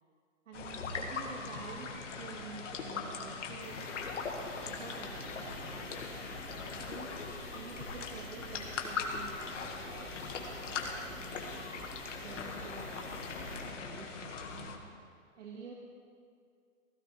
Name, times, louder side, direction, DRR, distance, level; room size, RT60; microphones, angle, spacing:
sound 1, 0.5-14.8, left 4 dB, 65° left, 1.8 m, -40 dB
voice 1, 0.5-3.8 4.7-7.1 7.5-11.6 12.2-14.8 15.4-15.7, right 5 dB, 65° right, -2 dB, 1.9 m, -49 dB
sound 2, 2.9-12.0, left 4 dB, 15° left, 0.6 m, -58 dB
sound 3, 3.6-13.6, equal, 10° right, 2.7 m, -49 dB
16.5 x 16.0 x 3.3 m, 2.2 s
hypercardioid pair, 165°, 40 cm